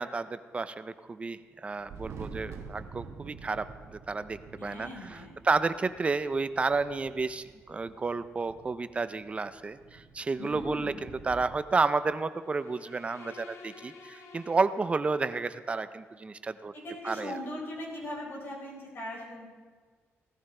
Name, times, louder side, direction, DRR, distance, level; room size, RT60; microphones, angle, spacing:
voice 1, 0.0-3.7 3.9-16.7 17.0-17.3, right 4 dB, 25° right, 13 dB, 0.5 m, -31 dB
Thunder, 1.7-11.6, right 5 dB, 75° right, 1.1 m, -48 dB
voice 2, 4.6-5.3 10.4-11.0 16.7-19.5, left 1 dB, 50° left, -3 dB, 4.4 m, -39 dB
sound 1, 12.4-15.4, left 4 dB, 75° left, 1.2 m, -51 dB
17.0 x 14.0 x 3.3 m, 1.5 s
cardioid pair, 135°, 5 cm